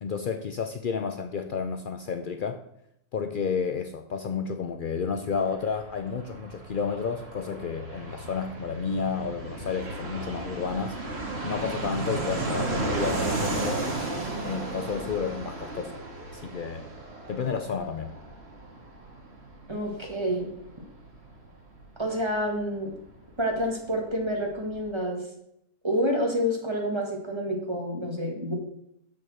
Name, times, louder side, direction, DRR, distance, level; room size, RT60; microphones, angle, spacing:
voice 1, 0.0-2.6 3.1-11.0 11.4-13.9 14.4-16.0 16.3-16.8 17.3-18.1, left 6 dB, 85° left, 7 dB, 0.4 m, -31 dB
Fixed-wing aircraft airplane, 5.2-23.6 23.9-24.0 24.1-24.9, right 2 dB, 45° right, 1.8 m, -34 dB
voice 2, 19.7-20.5 22.0-22.9 23.4-25.2 25.8-28.5, equal, 20° right, 0 dB, 1.8 m, -28 dB
7.1 x 6.1 x 6.4 m, 0.77 s
omnidirectional pair, 1.6 m